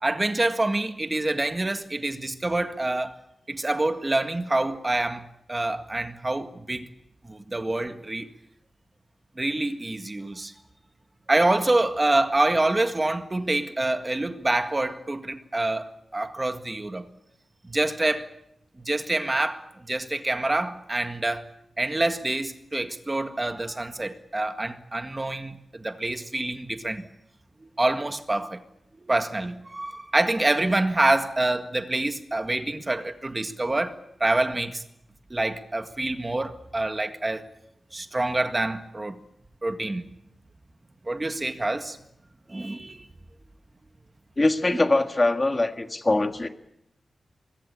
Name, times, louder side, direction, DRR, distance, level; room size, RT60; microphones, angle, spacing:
voice 1, 0.0-3.2 3.5-6.9 7.3-8.3 9.4-10.5 11.3-17.1 17.6-18.3 18.8-21.5 21.8-27.1 27.6-28.6 29.1-33.9 34.2-34.8 35.3-37.4 37.9-39.2 39.6-40.0 41.1-42.0 42.5-43.1, right 2 dB, 20° right, 1.8 m, -26 dB
voice 2, 44.4-46.5, left 2 dB, 25° left, 1.7 m, -22 dB
24.5 x 21.5 x 8.6 m
wide cardioid pair, 140°, 0 cm